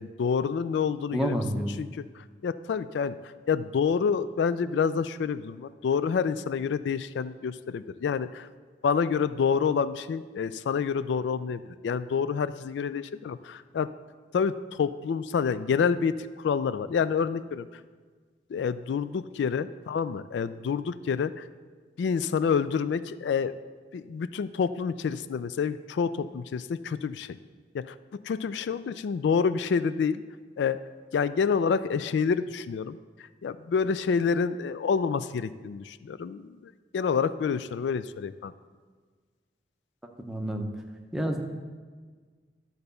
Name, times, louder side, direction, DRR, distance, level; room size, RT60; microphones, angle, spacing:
voice 1, 0.0-1.4 1.8-8.5 8.8-13.9 14.3-17.8 18.5-21.5 22.0-23.6 23.9-27.4 27.7-30.2 30.6-30.8 31.1-33.0 33.4-38.5, left 6 dB, 75° left, 14 dB, 0.3 m, -28 dB
voice 2, 1.1-1.7 40.2-40.7 41.1-41.4, equal, 5° right, 2 dB, 0.7 m, -29 dB
12.0 x 4.0 x 6.8 m, 1.5 s
head